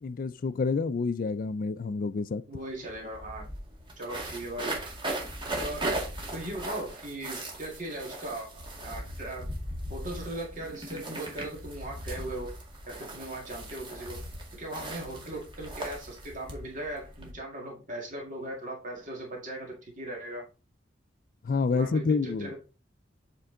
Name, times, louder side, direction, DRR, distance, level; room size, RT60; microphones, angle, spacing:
voice 1, 0.0-2.4 21.4-22.5, left 4 dB, 50° left, 0.4 m, -28 dB
voice 2, 2.5-3.4 4.0-4.8 5.6-5.9 6.3-9.5 9.9-12.5 12.9-14.2 14.5-20.5 21.7-22.6, right 1 dB, 45° right, 1.9 m, -38 dB
sound 1, 2.6-2.7 2.9-17.3, right 1 dB, 25° right, 2.0 m, -38 dB
8.2 x 4.5 x 3.8 m
head